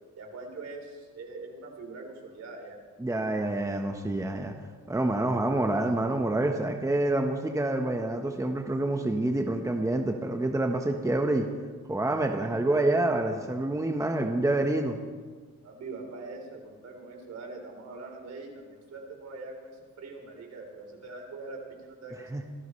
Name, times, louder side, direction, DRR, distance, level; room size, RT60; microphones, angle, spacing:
voice 1, 0.2-2.8 15.6-22.5, right 3 dB, 60° right, 1 dB, 4.1 m, -43 dB
voice 2, 3.0-4.5 4.9-11.4 11.9-15.0 22.3-22.4, right 2 dB, 10° right, 3 dB, 1.2 m, -27 dB
26.0 x 13.0 x 3.3 m, 1.5 s
cardioid pair, 90°, 30 cm